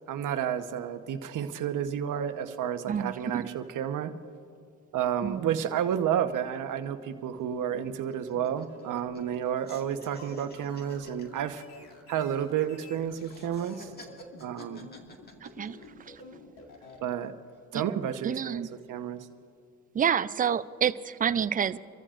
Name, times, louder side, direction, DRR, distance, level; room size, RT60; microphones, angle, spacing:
voice 1, 0.1-4.1 4.9-11.6 12.1-13.9 14.4-14.9 17.0-17.3 17.7-18.6 18.9-19.3, right 9 dB, 55° right, 8 dB, 1.0 m, -31 dB
voice 2, 2.9-3.5 5.2-5.6 15.4-15.8 17.7-17.8 18.2-18.7 19.9-21.8, right 8 dB, 25° right, 15 dB, 0.4 m, -28 dB
sound 1, 6.9-7.0 7.2-7.4 7.8-9.4 9.6-12.7 13.1-16.2 16.7-17.3, left 1 dB, 25° left, 2.0 m, -53 dB
sound 2, 7.3-17.1, left 3 dB, 80° left, 2.0 m, -49 dB
27.0 x 14.0 x 2.5 m, 2.4 s
supercardioid pair, 90°, 37 cm